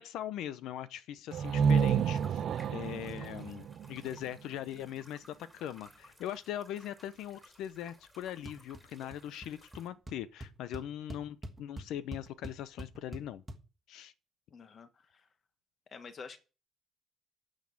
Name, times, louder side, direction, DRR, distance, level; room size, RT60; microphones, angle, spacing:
voice 1, 0.0-2.4 2.7-13.4 13.9-14.1, left 11 dB, 85° left, 0.7 m, -41 dB
sound 1, 1.3-9.9, equal, 5° left, 3.3 m, -60 dB
sound 2, 1.3-5.0, right 7 dB, 45° right, 0.6 m, -30 dB
sound 3, 8.5-8.8 9.1-9.5 9.7-9.8 10.1-13.6, right 1 dB, 10° right, 1.5 m, -44 dB
voice 2, 14.5-14.9 15.9-16.4, left 5 dB, 35° left, 1.4 m, -47 dB
9.5 x 6.5 x 8.6 m
cardioid pair, 175°, 0 cm